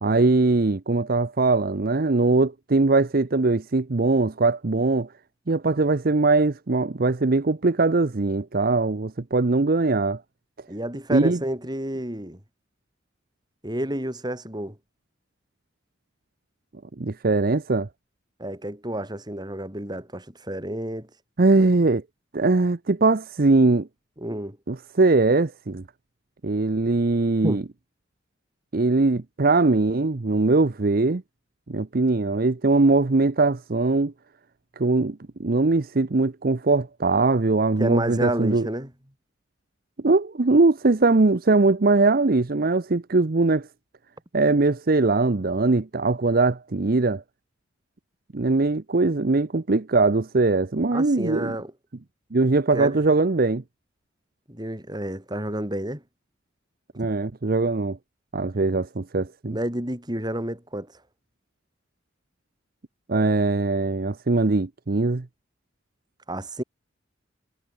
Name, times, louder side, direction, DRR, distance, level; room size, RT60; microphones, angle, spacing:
voice 1, 0.0-5.1 5.5-10.2 11.1-11.4 17.0-17.9 21.4-22.0 22.3-23.9 24.7-25.8 26.4-27.6 28.7-31.2 31.7-34.1 34.8-38.7 40.0-43.7 44.3-47.2 48.3-51.5 52.3-53.6 57.0-58.0 58.3-59.6 63.1-65.3, right 3 dB, 50° right, 0.7 m, -21 dB
voice 2, 10.7-12.4 13.6-14.8 18.4-21.1 21.6-21.7 24.2-24.6 27.4-27.6 37.8-38.9 50.9-51.7 52.7-53.0 54.5-56.0 59.4-60.9 66.3-66.6, right 1 dB, 20° right, 4.6 m, -30 dB
head